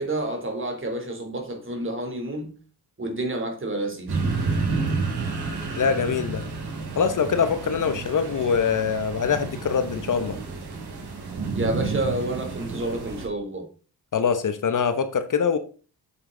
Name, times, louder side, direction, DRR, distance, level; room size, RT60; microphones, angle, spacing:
voice 1, 0.0-2.5 3.0-4.2 11.5-13.7, right 1 dB, 30° right, 3.1 m, -29 dB
sound 1, 4.1-13.3, right 4 dB, 75° right, 3.1 m, -30 dB
voice 2, 5.8-6.4 7.0-10.4 14.1-15.6, left 6 dB, 50° left, 0.9 m, -23 dB
8.3 x 7.5 x 3.8 m
cardioid pair, 95°, 39 cm